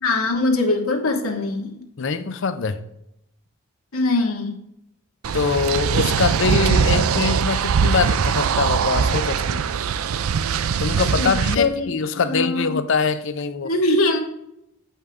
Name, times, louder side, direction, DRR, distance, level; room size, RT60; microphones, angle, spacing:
voice 1, 0.0-1.8 3.9-4.6 11.2-11.3 11.6-12.8 13.6-14.2, left 2 dB, 85° left, 1.4 m, -22 dB
voice 2, 2.0-2.8 5.3-9.6 10.8-13.7, left 5 dB, 60° left, 0.5 m, -23 dB
sound 1, 5.2-11.6, right 6 dB, 80° right, 0.4 m, -21 dB
7.7 x 5.6 x 3.5 m
head